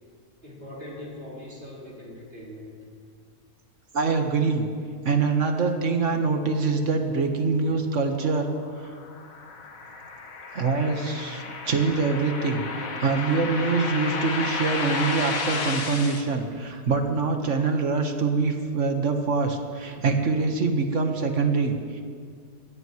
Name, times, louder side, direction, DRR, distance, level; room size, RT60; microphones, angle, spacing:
voice 1, 0.4-2.7, left 1 dB, 45° right, -6 dB, 5.2 m, -41 dB
voice 2, 3.9-4.7 5.0-8.5 10.5-22.0, right 4 dB, 60° right, 4 dB, 1.8 m, -24 dB
sound 1, 8.4-16.2, left 4 dB, 75° left, 1.7 m, -32 dB
23.0 x 16.5 x 3.2 m, 2.1 s
omnidirectional pair, 1.5 m